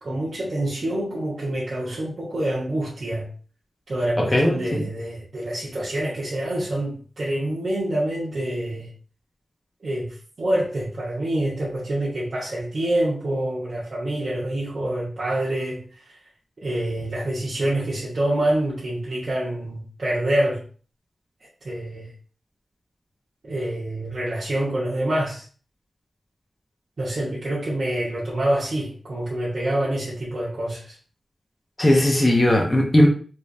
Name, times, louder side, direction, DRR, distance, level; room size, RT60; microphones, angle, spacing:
voice 1, 0.0-3.3 3.9-8.9 9.8-16.2 16.6-20.6 21.6-22.1 23.4-25.4 27.0-30.9, right 1 dB, 55° right, -8 dB, 1.1 m, -26 dB
voice 2, 4.2-4.8 31.8-33.1, left 1 dB, 20° left, -1 dB, 0.8 m, -18 dB
3.3 x 3.0 x 2.6 m, 0.41 s
wide cardioid pair, 80°, 0 cm